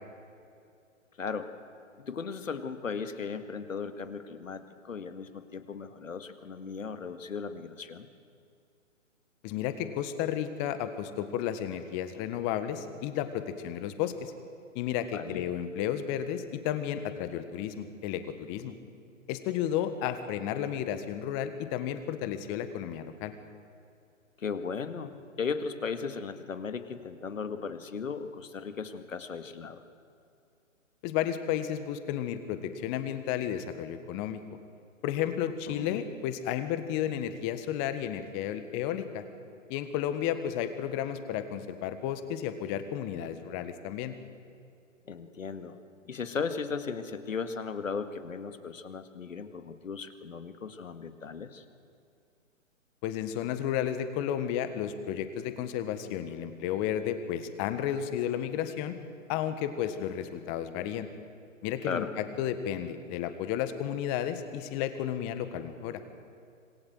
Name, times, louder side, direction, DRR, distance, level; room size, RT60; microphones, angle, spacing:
voice 1, 1.2-1.5 2.0-8.1 15.1-15.5 24.4-29.8 35.7-36.0 45.1-45.8 46.1-51.6 61.8-62.1, left 5 dB, 75° left, 9 dB, 2.0 m, -36 dB
voice 2, 9.4-14.3 14.7-18.7 19.3-23.3 31.0-34.4 35.0-39.2 39.7-44.1 53.0-59.0 59.3-61.1 61.6-66.0, left 10 dB, 25° left, 10 dB, 1.6 m, -32 dB
26.5 x 19.5 x 7.9 m, 2.5 s
figure-of-eight pair, 135°, 39 cm